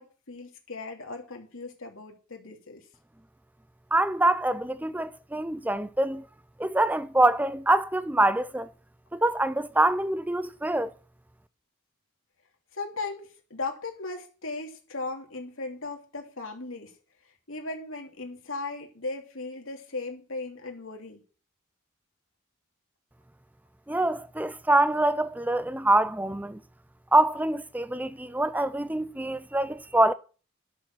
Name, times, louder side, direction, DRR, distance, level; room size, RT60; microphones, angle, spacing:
voice 1, 0.0-2.8 12.7-16.9 17.5-21.2, left 3 dB, 90° left, 3.1 m, -37 dB
voice 2, 3.9-6.2 6.6-8.7 9.1-10.9 23.9-26.6 27.1-30.1, right 2 dB, 10° right, 0.5 m, -25 dB
11.5 x 7.1 x 6.3 m
head